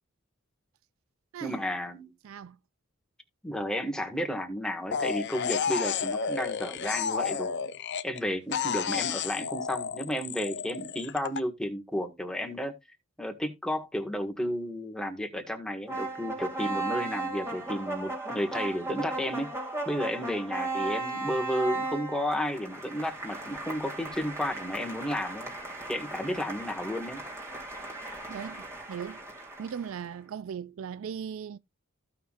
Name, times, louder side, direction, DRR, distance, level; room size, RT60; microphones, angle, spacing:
voice 1, 1.4-2.1 3.4-7.6 8.0-12.7 13.2-19.5 19.8-25.5 25.9-27.2, equal, 5° left, 1.6 m, -32 dB
voice 2, 2.2-2.6 28.3-29.2 29.6-31.6, right 7 dB, 75° right, 0.4 m, -38 dB
sound 1, 4.9-8.2 8.5-11.4, left 6 dB, 60° left, 0.6 m, -31 dB
sound 2, 15.9-30.0, right 2 dB, 15° right, 2.2 m, -36 dB
15.0 x 5.7 x 2.5 m
head